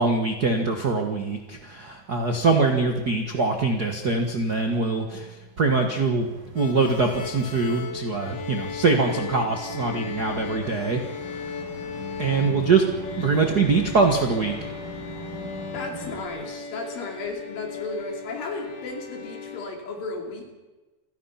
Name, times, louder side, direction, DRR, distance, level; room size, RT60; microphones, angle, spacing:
voice 1, 0.0-11.5 12.2-12.9 13.2-14.7, right 4 dB, 55° right, 4 dB, 1.1 m, -23 dB
sound 1, 6.1-16.3, right 1 dB, 70° right, 6.9 m, -41 dB
sound 2, 6.6-19.7, left 5 dB, 85° left, 4.2 m, -37 dB
voice 2, 15.7-20.5, left 3 dB, 70° left, 2 dB, 4.6 m, -34 dB
28.0 x 16.5 x 5.8 m, 1.2 s
omnidirectional pair, 4.3 m